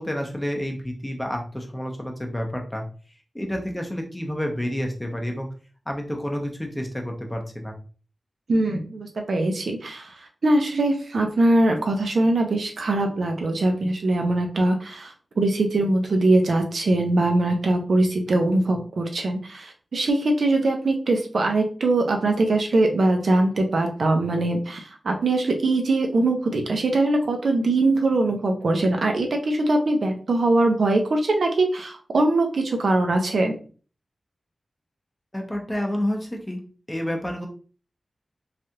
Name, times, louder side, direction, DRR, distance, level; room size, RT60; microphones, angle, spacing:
voice 1, 0.0-2.8 3.3-5.5 5.9-7.7 35.3-36.6 36.9-37.5, equal, 10° left, 2 dB, 0.7 m, -29 dB
voice 2, 8.5-10.1 10.4-33.5, right 2 dB, 75° right, 3 dB, 0.6 m, -22 dB
3.3 x 2.4 x 2.8 m, 0.38 s
wide cardioid pair, 115°, 0 cm